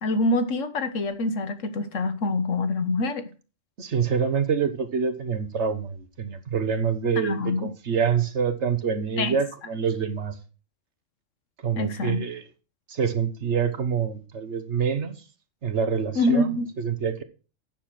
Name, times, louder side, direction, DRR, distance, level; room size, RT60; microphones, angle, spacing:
voice 1, 0.0-3.2 7.2-7.7 9.2-9.4 11.8-12.3 16.1-16.7, left 2 dB, 80° left, 1.4 m, -25 dB
voice 2, 3.8-10.3 11.6-12.4 12.9-15.1 15.6-17.2, right 6 dB, 65° right, 1.4 m, -26 dB
9.1 x 6.8 x 5.9 m
omnidirectional pair, 1.3 m